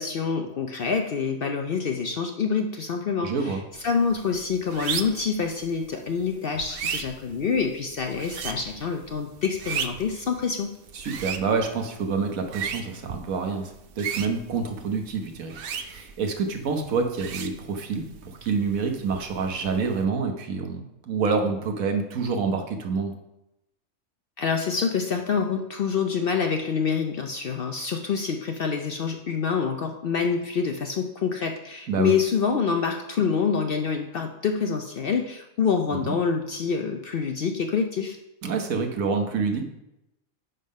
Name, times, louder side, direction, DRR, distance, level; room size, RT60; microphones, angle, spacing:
voice 1, 0.0-10.7 24.4-38.2, left 6 dB, 55° left, 4 dB, 0.6 m, -26 dB
voice 2, 3.2-3.6 10.9-23.1 31.9-32.1 36.0-36.2 38.4-39.6, right 5 dB, 80° right, 4 dB, 1.4 m, -27 dB
sound 1, 3.7-20.0, right 7 dB, 60° right, 0.6 m, -37 dB
9.6 x 3.7 x 5.3 m, 0.90 s
omnidirectional pair, 1.4 m